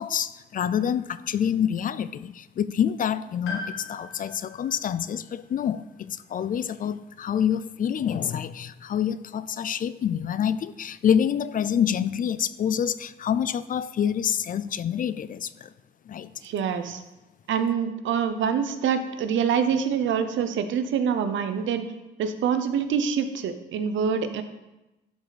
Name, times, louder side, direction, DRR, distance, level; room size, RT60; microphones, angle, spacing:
voice 1, 0.0-15.7 16.1-16.3, left 8 dB, 45° left, 16 dB, 0.4 m, -27 dB
Piano, 3.5-7.6 8.8-8.9, left 3 dB, 85° left, 1.8 m, -41 dB
voice 2, 16.4-17.0 17.5-21.8 22.2-24.4, right 7 dB, 75° right, 9 dB, 0.8 m, -25 dB
12.0 x 4.9 x 4.1 m, 1.0 s
cardioid pair, 90°, 20 cm